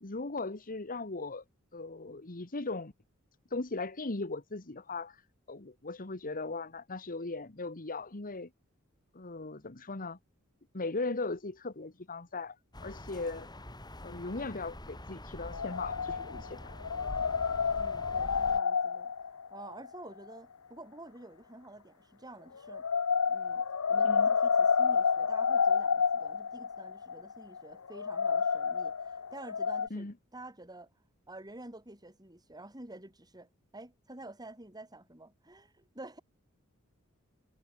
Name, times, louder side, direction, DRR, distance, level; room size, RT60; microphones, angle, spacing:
voice 1, 0.0-1.4 1.7-2.9 3.5-5.2 5.5-8.5 9.1-10.2 10.7-13.5 14.0-16.7 24.0-24.3 29.9-30.1, left 3 dB, 40° left, 1.5 m, -38 dB
sound 1, 12.7-18.6, left 1 dB, 20° left, 4.6 m, -45 dB
sound 2, 15.5-16.5 16.8-20.0 22.7-29.9, left 6 dB, 80° left, 0.8 m, -29 dB
voice 2, 17.8-22.9 23.3-30.9 31.3-36.2, right 2 dB, 20° right, 7.4 m, -50 dB
head